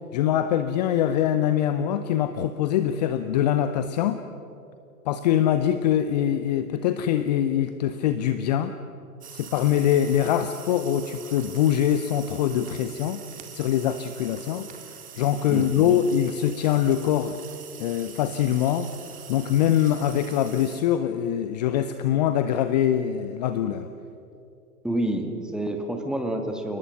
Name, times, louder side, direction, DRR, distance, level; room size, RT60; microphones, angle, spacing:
voice 1, 0.1-4.2 5.1-8.8 9.3-13.2 13.5-17.4 17.8-18.9 19.3-23.9, left 10 dB, 30° left, 11 dB, 0.7 m, -23 dB
sound 1, 9.2-20.8, right 8 dB, 15° right, 2.2 m, -44 dB
voice 2, 15.5-16.0 24.8-26.8, right 1 dB, ahead, 4 dB, 1.6 m, -28 dB
29.5 x 19.0 x 6.3 m, 2.7 s
figure-of-eight pair, 115°, 46 cm